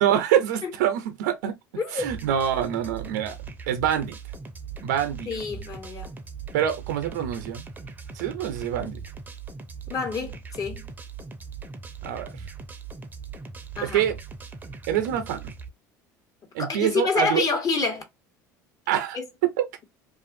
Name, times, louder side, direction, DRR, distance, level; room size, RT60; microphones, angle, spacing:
voice 1, 0.0-1.6 1.9-3.4 3.7-4.2 4.8-5.3 6.5-7.7 8.1-9.0 12.0-12.3 13.8-14.2 14.9-15.4 16.5-17.4 18.9-19.7, right 10 dB, 80° right, 0.7 m, -25 dB
voice 2, 1.8-2.1 5.3-6.1 9.9-10.8 13.8-14.1 16.6-18.0 19.1-19.2, left 4 dB, 40° left, 1.2 m, -27 dB
sound 1, 2.0-15.7, right 5 dB, 20° right, 0.6 m, -40 dB
2.5 x 2.5 x 2.6 m
hypercardioid pair, 80°, 9 cm